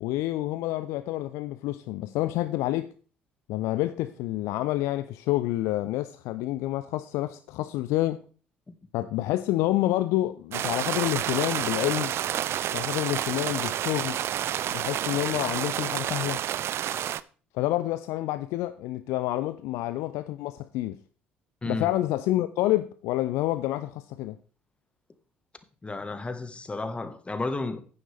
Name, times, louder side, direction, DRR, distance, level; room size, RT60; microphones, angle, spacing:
voice 1, 0.0-2.9 3.5-8.2 8.9-12.2 12.7-14.2 14.7-16.4 17.5-21.0 21.6-24.4, left 15 dB, 60° left, 0.5 m, -28 dB
sound 1, 10.5-17.2, right 11 dB, 50° right, 0.5 m, -29 dB
voice 2, 21.6-21.9 25.8-27.8, left 3 dB, 20° left, 1.4 m, -32 dB
11.0 x 9.4 x 3.3 m
figure-of-eight pair, 50°, 6 cm